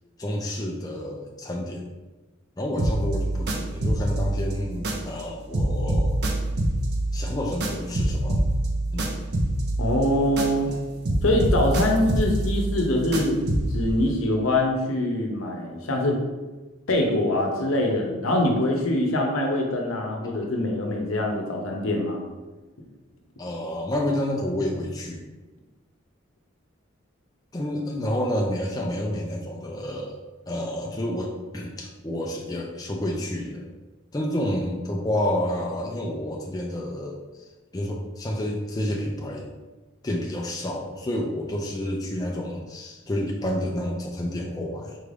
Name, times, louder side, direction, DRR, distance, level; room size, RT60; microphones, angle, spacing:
voice 1, 0.2-1.8 2.6-6.2 7.1-8.4 8.9-9.1 23.4-25.2 27.5-30.2 30.5-33.7 34.1-37.2 37.7-39.5 40.0-45.0, left 1 dB, 20° left, 0 dB, 0.4 m, -29 dB
sound 1, 2.8-5.3 5.5-10.8 11.0-13.8, right 1 dB, 50° right, 0.5 m, -26 dB
voice 2, 9.8-10.7 11.2-13.4 13.7-16.2 16.9-22.2, left 1 dB, 85° left, 1 dB, 0.7 m, -24 dB
4.5 x 2.5 x 3.3 m, 1.2 s
head